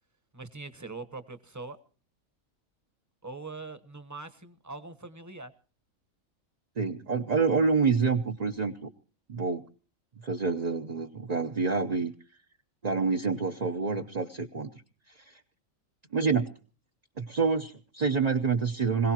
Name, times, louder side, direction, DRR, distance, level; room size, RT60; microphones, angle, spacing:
voice 1, 0.3-1.8 3.2-5.5, right 3 dB, 15° right, 1.0 m, -42 dB
voice 2, 6.8-8.9 9.3-9.6 10.2-12.1 12.8-14.7 15.1-15.4 16.1-16.5 17.2-19.1, right 5 dB, 35° right, 0.8 m, -27 dB
26.0 x 17.0 x 2.9 m
omnidirectional pair, 1.4 m